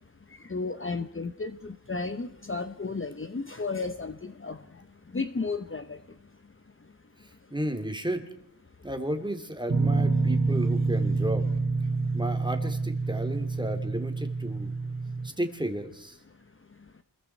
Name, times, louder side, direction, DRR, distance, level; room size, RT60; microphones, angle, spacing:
voice 1, 0.5-4.6 5.1-5.8, left 4 dB, 30° left, 9 dB, 1.1 m, -33 dB
voice 2, 7.2-8.2 8.8-11.5 12.1-14.7 15.2-16.2, right 1 dB, 10° right, 6 dB, 2.9 m, -33 dB
sound 1, 9.7-15.3, right 3 dB, 30° right, 1.7 m, -27 dB
29.0 x 21.5 x 4.7 m, 0.74 s
wide cardioid pair, 85°, 41 cm